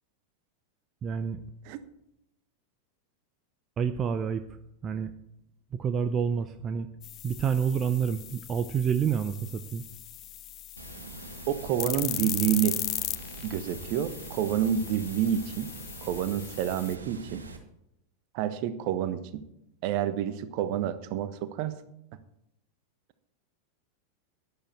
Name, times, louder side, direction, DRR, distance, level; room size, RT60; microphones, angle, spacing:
voice 1, 1.0-1.4 3.8-5.1 5.7-6.9 7.2-9.8, right 7 dB, 25° right, 9 dB, 0.7 m, -28 dB
sound 1, 7.0-17.0, left 14 dB, 35° left, 0.4 m, -38 dB
Water, 10.8-17.6, right 3 dB, 75° right, 2.0 m, -44 dB
voice 2, 11.5-12.8 13.4-15.7 16.0-17.4 18.3-19.4 19.8-21.8, right 10 dB, 45° right, 12 dB, 1.2 m, -28 dB
12.0 x 11.5 x 4.5 m, 0.81 s
figure-of-eight pair, 90°, 0 cm